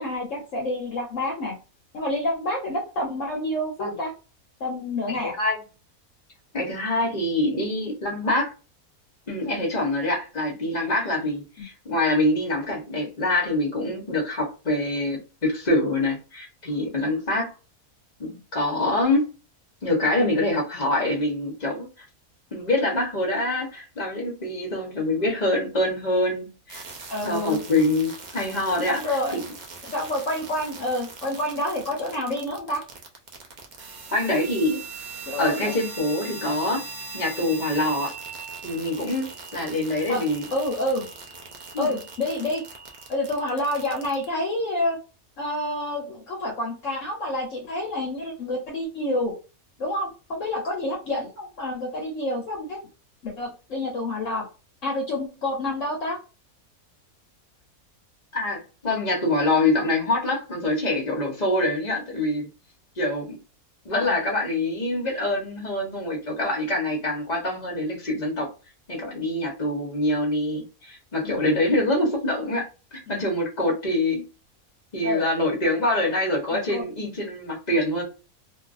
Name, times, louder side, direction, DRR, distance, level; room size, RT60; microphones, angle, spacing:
voice 1, 0.0-1.5 1.9-4.1 4.6-5.3 27.1-27.6 28.9-29.4 29.9-32.8 35.2-35.8 40.1-40.2 40.5-41.0 41.8-42.6 43.1-45.0 45.4-49.3 49.8-52.8 53.2-54.4 54.8-56.2 63.9-64.1 71.2-71.4 73.1-73.3 75.0-75.2 76.5-76.8, left 1 dB, 60° left, 1.1 m, -28 dB
voice 2, 5.1-5.6 6.5-8.5 9.3-17.5 18.2-19.3 19.8-21.9 22.5-26.8 27.2-29.4 34.1-34.8 35.4-36.8 37.1-38.1 38.6-40.5 41.7-42.0 58.3-62.5 63.0-63.4 63.8-68.5 68.9-74.2 74.9-78.0, left 1 dB, 35° left, 0.9 m, -25 dB
sound 1, 26.7-44.3, right 4 dB, 70° right, 0.4 m, -40 dB
2.7 x 2.5 x 2.4 m
omnidirectional pair, 1.6 m